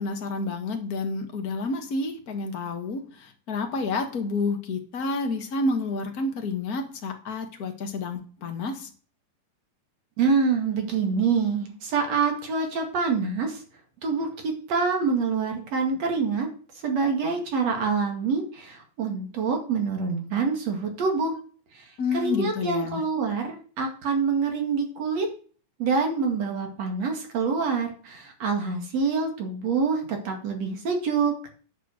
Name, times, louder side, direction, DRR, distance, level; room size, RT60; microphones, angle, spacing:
voice 1, 0.0-8.9 22.0-23.0, left 3 dB, 65° left, 4 dB, 0.9 m, -29 dB
voice 2, 10.2-13.6 14.0-16.5 16.8-21.3 21.7-21.8 22.1-25.3 25.8-31.3, right 5 dB, 50° right, 3 dB, 2.9 m, -26 dB
10.0 x 6.7 x 6.3 m, 0.41 s
omnidirectional pair, 4.0 m